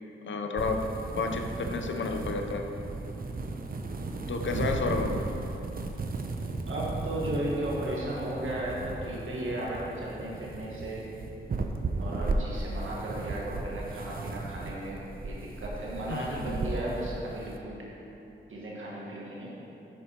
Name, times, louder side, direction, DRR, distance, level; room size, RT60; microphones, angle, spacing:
voice 1, 0.2-0.9 1.2-2.6 4.3-5.2 16.1-16.6, left 4 dB, 70° left, 4 dB, 0.6 m, -31 dB
sound 1, 0.6-17.6, right 3 dB, 45° right, 0.6 m, -35 dB
voice 2, 6.7-11.1 12.0-17.8 18.5-19.5, right 1 dB, 75° right, -5 dB, 1.5 m, -35 dB
11.5 x 4.4 x 2.9 m, 3.0 s
cardioid pair, 45°, 21 cm